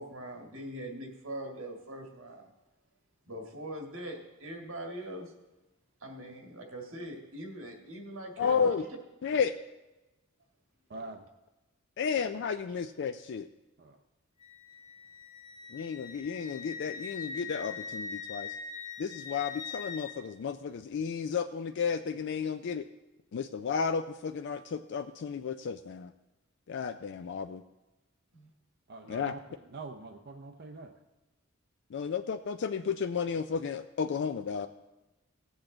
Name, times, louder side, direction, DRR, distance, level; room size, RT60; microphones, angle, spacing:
voice 1, 0.0-2.5 3.3-5.3 6.0-8.7 28.3-28.5, right 1 dB, 85° right, 2 dB, 1.8 m, -42 dB
voice 2, 8.4-8.8 9.2-9.5 12.0-13.5 15.7-18.5 19.0-22.8 23.3-26.1 26.7-27.6 29.1-29.3 31.9-34.7, left 6 dB, 60° left, 8 dB, 0.4 m, -32 dB
voice 3, 10.9-11.3 13.8-14.0 28.9-29.4 29.7-30.9, right 3 dB, 55° right, 5 dB, 0.6 m, -44 dB
Wind instrument woodwind instrument, 14.4-20.2, left 5 dB, 35° left, 2.0 m, -42 dB
17.0 x 8.0 x 3.8 m, 1.1 s
head